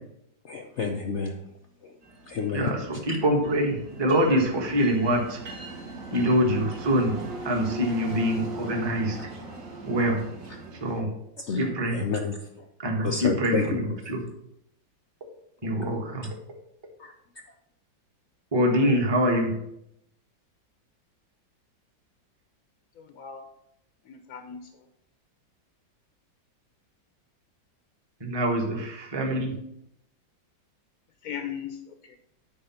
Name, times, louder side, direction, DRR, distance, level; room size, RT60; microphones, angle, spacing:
voice 1, 0.5-1.3 2.3-2.7 11.5-11.6 11.9-12.4 13.0-13.6 17.0-17.1, left 5 dB, 75° left, 3 dB, 0.6 m, -29 dB
sound 1, 2.0-11.0, right 2 dB, 45° right, 1.6 m, -40 dB
voice 2, 2.5-5.4 6.1-7.1 7.4-9.2 9.8-10.2 10.8-11.1 11.6-12.0 12.8-14.2 15.6-16.3 18.5-19.5 28.2-29.5, equal, 15° right, 1 dB, 1.1 m, -25 dB
voice 3, 22.9-23.4 24.0-24.9 31.2-32.2, left 8 dB, 60° left, 7 dB, 1.1 m, -38 dB
9.0 x 4.9 x 5.7 m, 0.78 s
omnidirectional pair, 2.1 m